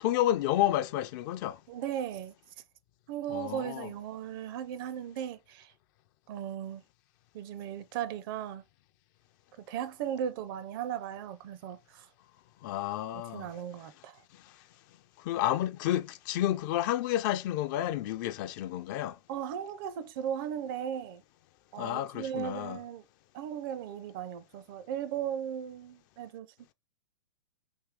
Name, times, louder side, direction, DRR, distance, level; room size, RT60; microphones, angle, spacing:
voice 1, 0.0-1.6 3.3-3.9 12.6-13.5 14.4-14.5 15.2-19.2 21.8-22.8, left 13 dB, 45° left, 0.4 m, -30 dB
voice 2, 1.7-2.3 3.1-5.7 6.3-6.8 7.3-8.6 9.7-12.1 13.3-14.2 19.3-21.2 21.7-23.0 23.3-26.5, right 9 dB, 50° right, 0.5 m, -37 dB
3.6 x 2.6 x 3.5 m
hypercardioid pair, 110°, 15 cm